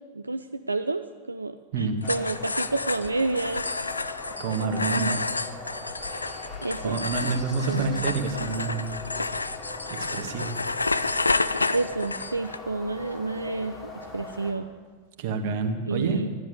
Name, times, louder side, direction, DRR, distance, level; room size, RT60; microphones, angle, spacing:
voice 1, 0.1-1.0 1.3-3.6 4.7-5.2 6.6-7.0 7.7-8.0 11.7-14.7 15.9-16.4, right 3 dB, 80° right, 9 dB, 0.4 m, -30 dB
voice 2, 1.7-2.0 4.4-5.3 6.8-9.0 9.9-10.6 15.2-16.2, right 4 dB, 50° right, 6 dB, 1.7 m, -28 dB
sound 1, 2.0-12.6, left 3 dB, 80° left, 0.5 m, -30 dB
sound 2, 2.0-14.5, left 3 dB, 25° left, 3.0 m, -40 dB
13.0 x 11.0 x 8.5 m, 1.5 s
figure-of-eight pair, 90°, 0 cm